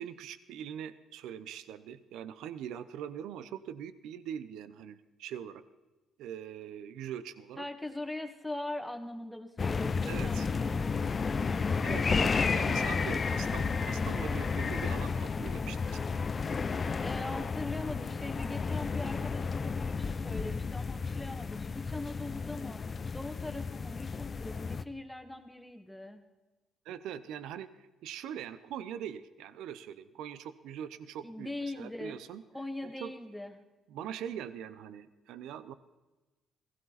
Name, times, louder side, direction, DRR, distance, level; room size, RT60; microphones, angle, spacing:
voice 1, 0.0-5.6 6.2-7.6 10.1-10.5 11.8-16.1 26.8-31.5 31.8-32.4 33.0-33.1 33.9-35.7, right 9 dB, 80° right, 15 dB, 0.6 m, -42 dB
voice 2, 7.6-12.1 17.0-22.8 23.1-26.2 31.2-32.2 32.5-33.5, left 1 dB, 5° left, 5 dB, 1.9 m, -41 dB
sound 1, 9.6-24.8, left 5 dB, 40° left, 0.6 m, -32 dB
16.0 x 15.5 x 4.2 m, 1.1 s
supercardioid pair, 60°, 0 cm